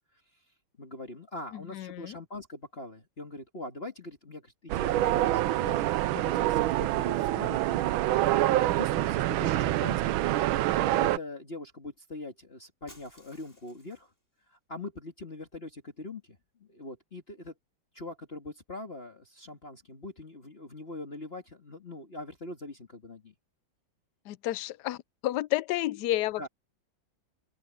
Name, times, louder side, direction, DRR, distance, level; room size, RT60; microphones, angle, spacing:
voice 1, 0.8-7.9 8.5-10.3 11.0-14.1 14.5-17.5 17.9-23.3 26.4-26.5, left 2 dB, 30° left, 2.2 m, -42 dB
voice 2, 1.5-2.1 24.3-25.0 25.2-26.5, left 15 dB, 70° left, 1.0 m, -31 dB
sound 1, 4.7-11.2, right 14 dB, 85° right, 1.5 m, -26 dB
Shatter, 12.9-14.2, equal, 10° left, 6.3 m, -56 dB
open air
omnidirectional pair, 2.2 m